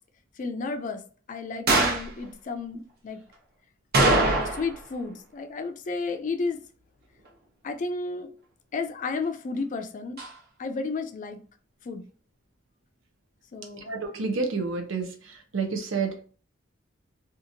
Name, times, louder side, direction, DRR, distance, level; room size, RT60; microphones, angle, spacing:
voice 1, 0.4-1.0 1.3-3.2 4.0-6.6 7.6-8.3 8.7-10.2 10.6-11.4 11.9-12.1 13.5-13.9, left 4 dB, 40° left, 0.4 m, -32 dB
sound 1, 1.7-2.1 3.9-4.8 5.1-5.2 10.2-10.3, right 2 dB, 55° right, 0.9 m, -22 dB
voice 2, 13.9-15.1 15.5-16.1, right 4 dB, 75° right, 0.6 m, -28 dB
2.8 x 2.4 x 2.5 m
head